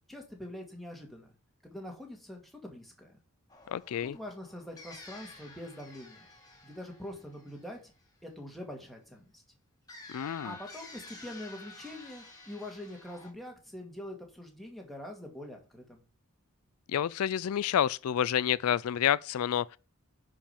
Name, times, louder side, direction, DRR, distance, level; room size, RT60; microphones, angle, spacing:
voice 1, 0.1-1.3 1.6-3.2 4.0-6.3 6.6-7.9 8.2-9.4 10.4-16.0, left 1 dB, ahead, 2.2 m, -44 dB
sound 1, 3.5-8.3 9.9-13.3, left 3 dB, 15° left, 2.2 m, -51 dB
voice 2, 3.7-4.1 10.1-10.5 16.9-19.8, left 9 dB, 75° left, 0.3 m, -29 dB
10.0 x 5.1 x 5.2 m
head